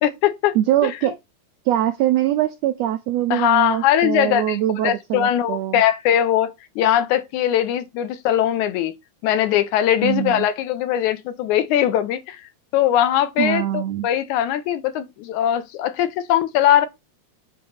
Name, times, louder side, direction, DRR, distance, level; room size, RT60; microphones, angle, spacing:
voice 1, 0.0-0.6 0.8-1.1 3.3-4.6 4.8-8.9 9.2-12.4 12.7-16.9, left 11 dB, 80° left, 2.0 m, -20 dB
voice 2, 0.5-1.2 1.6-5.8 10.0-10.5 13.4-14.1, right 13 dB, 85° right, 1.5 m, -22 dB
8.5 x 3.0 x 5.5 m
omnidirectional pair, 3.6 m